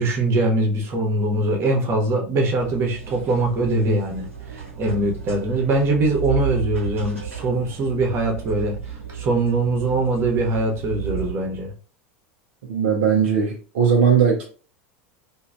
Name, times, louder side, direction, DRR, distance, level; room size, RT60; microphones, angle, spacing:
voice 1, 0.0-4.3 4.8-8.8 9.1-11.7, right 2 dB, 35° right, 1.0 m, -22 dB
sound 1, 2.6-11.3, right 8 dB, 85° right, 1.0 m, -33 dB
voice 2, 12.7-14.4, right 6 dB, 60° right, 0.6 m, -18 dB
3.0 x 2.3 x 2.5 m
figure-of-eight pair, 80°, 7 cm